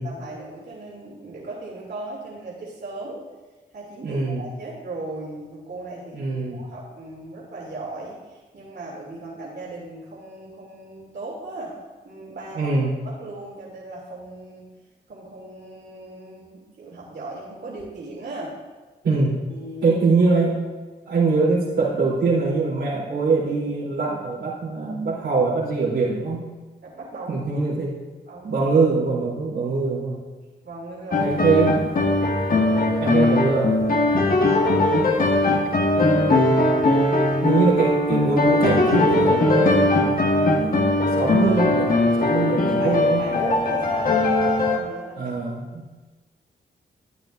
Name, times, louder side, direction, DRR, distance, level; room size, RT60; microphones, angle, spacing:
voice 1, 0.0-3.2 3.7-6.2 6.5-11.7 12.0-12.7 13.0-14.6 15.1-18.5 19.5-20.0 26.8-27.8 28.3-28.7 30.6-31.3 34.4-35.2 37.1-37.2 42.2-42.4 42.6-45.3, right 2 dB, 60° right, -6 dB, 3.0 m, -37 dB
voice 2, 4.0-4.5 6.1-6.6 12.5-12.9 19.0-19.3 19.8-20.6 21.1-26.4 27.3-27.9 28.4-30.2 31.2-31.9 33.0-33.8 36.0-36.1 36.3-36.4 37.4-41.9 42.2-43.2 45.2-45.8, right 4 dB, 85° right, -7 dB, 3.5 m, -23 dB
sound 1, 31.1-44.8, left 2 dB, 50° left, 1.5 m, -20 dB
13.5 x 9.1 x 2.6 m, 1.3 s
supercardioid pair, 45°, 19 cm